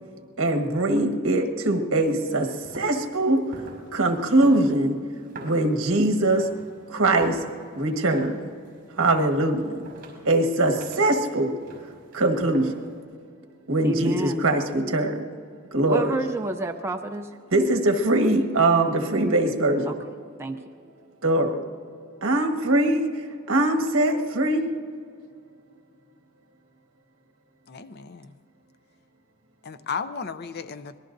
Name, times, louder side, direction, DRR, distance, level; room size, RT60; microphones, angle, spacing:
voice 1, 0.4-5.0 5.4-6.5 6.9-7.4 7.7-8.4 9.0-9.8 10.2-11.5 12.1-12.9 13.7-15.2 15.7-16.1 17.5-20.0 21.2-21.6 22.2-24.6, right 2 dB, 65° right, 5 dB, 1.5 m, -22 dB
sound 1, 2.3-13.0, right 1 dB, 45° right, 5.2 m, -44 dB
voice 2, 13.8-14.5 15.9-17.3 19.8-20.1 20.4-20.6, right 1 dB, 10° right, 3 dB, 0.5 m, -29 dB
voice 3, 27.7-28.3 29.6-31.0, left 6 dB, 50° left, 12 dB, 0.5 m, -34 dB
25.5 x 19.5 x 2.6 m, 2.2 s
head